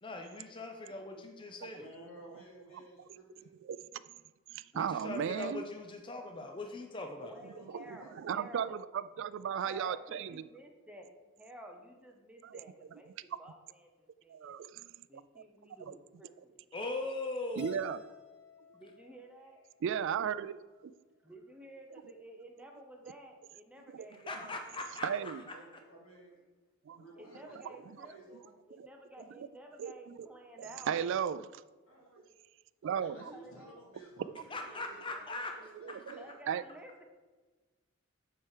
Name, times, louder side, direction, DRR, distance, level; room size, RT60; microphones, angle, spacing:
voice 1, 0.0-1.8 4.7-7.3 16.7-17.7 24.2-25.3 34.5-35.6, left 2 dB, 25° left, 4 dB, 0.6 m, -40 dB
voice 2, 1.7-3.5 7.3-8.1 25.5-26.4 26.9-28.6 31.9-32.3 33.0-36.3, right 1 dB, 80° left, -3 dB, 2.8 m, -55 dB
voice 3, 4.5-5.6 7.7-10.4 12.4-12.6 14.3-14.9 15.4-15.5 15.8-15.9 17.6-18.0 19.8-20.6 21.9-22.1 23.0-23.1 23.9-24.1 25.0-25.4 26.9-27.0 27.6-28.1 28.8-28.9 29.4-29.5 29.8-30.2 30.6-31.6 32.8-33.3 35.8-36.6, right 8 dB, 60° right, 15 dB, 0.3 m, -36 dB
voice 4, 7.2-8.8 9.6-11.1 11.4-13.1 13.4-14.6 15.1-16.5 18.7-19.6 21.3-24.6 27.2-28.4 28.7-31.0 33.1-33.8 36.2-37.0, right 1 dB, 5° right, 2 dB, 0.8 m, -52 dB
Keyboard (musical), 17.6-19.9, left 7 dB, 55° left, 1.5 m, -52 dB
7.4 x 4.7 x 6.5 m, 1.3 s
head